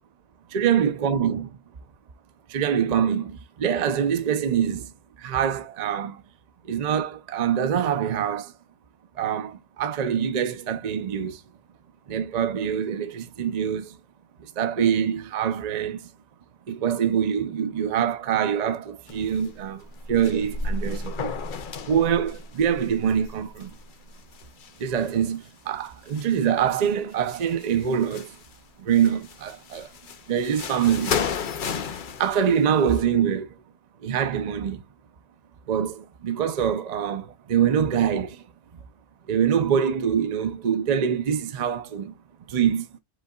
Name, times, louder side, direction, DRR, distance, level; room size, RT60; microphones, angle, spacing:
voice 1, 0.5-1.5 2.5-4.9 5.2-6.2 6.6-8.5 9.2-11.4 12.1-14.0 14.4-16.1 16.7-21.3 21.9-23.7 24.8-28.4 28.8-29.9 30.3-31.3 32.2-33.5 34.0-34.8 35.7-38.4 39.3-42.2 42.5-42.8, right 8 dB, 45° right, 0.6 m, -24 dB
sound 1, 19.1-19.5 19.8-25.3 25.8-26.8 27.1-28.6 28.9-33.0, left 5 dB, 55° left, 0.8 m, -34 dB
5.3 x 3.9 x 2.2 m
omnidirectional pair, 1.1 m